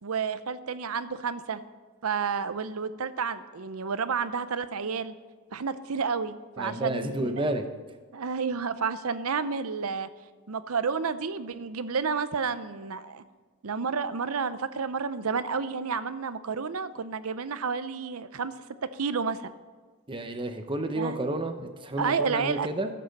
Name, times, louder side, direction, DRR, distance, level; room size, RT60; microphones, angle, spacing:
voice 1, 0.0-1.6 2.0-5.1 5.5-7.5 8.1-10.1 10.5-13.2 13.6-18.5 18.9-19.5 21.0-21.2 22.0-22.7, right 5 dB, 75° right, 13 dB, 0.6 m, -30 dB
voice 2, 6.6-7.6 20.1-22.9, right 1 dB, 20° right, 7 dB, 0.9 m, -31 dB
14.0 x 7.5 x 5.3 m, 1.4 s
head